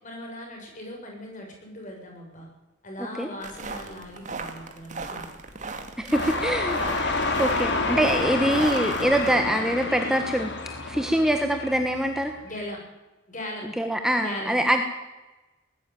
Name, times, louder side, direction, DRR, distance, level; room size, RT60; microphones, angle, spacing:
voice 1, 0.0-2.5 2.8-5.3 12.4-12.8 13.3-13.7 14.2-14.6, left 1 dB, 40° left, 1 dB, 6.9 m, -39 dB
sound 1, 3.4-9.4, right 4 dB, 40° right, 2.3 m, -37 dB
voice 2, 6.0-10.5 10.9-12.3 13.8-14.8, equal, 5° right, 5 dB, 1.3 m, -24 dB
sound 2, 6.1-12.4, left 3 dB, 60° left, 3.3 m, -28 dB
19.0 x 14.5 x 9.3 m, 1.1 s
head